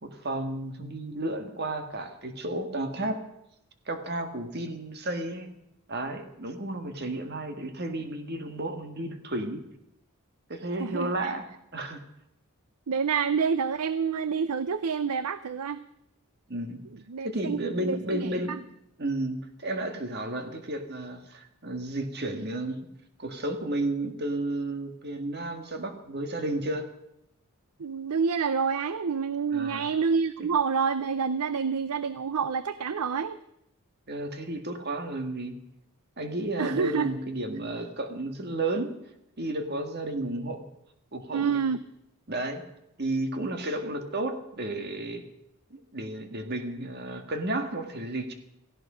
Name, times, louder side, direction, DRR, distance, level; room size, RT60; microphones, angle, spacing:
voice 1, 0.0-3.2 3.9-5.5 5.9-9.6 10.5-11.5 11.7-12.0 16.5-16.8 17.2-18.6 19.0-22.9 23.2-26.9 29.5-29.9 34.1-35.5 36.2-38.9 39.4-40.6 41.1-41.6 42.3-42.6 43.0-45.2 45.7-48.3, right 1 dB, 45° right, 6 dB, 1.9 m, -32 dB
voice 2, 10.8-11.3 12.9-15.8 17.1-18.6 27.8-33.4 36.6-37.1 41.3-41.8, right 6 dB, 90° right, 14 dB, 0.6 m, -28 dB
17.0 x 16.0 x 5.1 m, 0.80 s
head